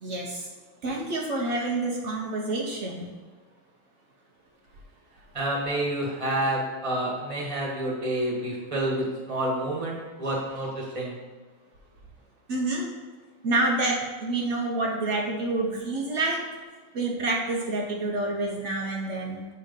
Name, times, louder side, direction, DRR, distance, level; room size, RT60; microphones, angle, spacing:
voice 1, 0.0-0.5 0.8-3.1 12.5-12.9 13.4-16.4 16.9-19.5, right 2 dB, 90° right, -1 dB, 0.6 m, -28 dB
voice 2, 5.3-11.2, right 1 dB, 20° right, -3 dB, 1.0 m, -29 dB
8.1 x 2.9 x 5.1 m, 1.4 s
omnidirectional pair, 2.3 m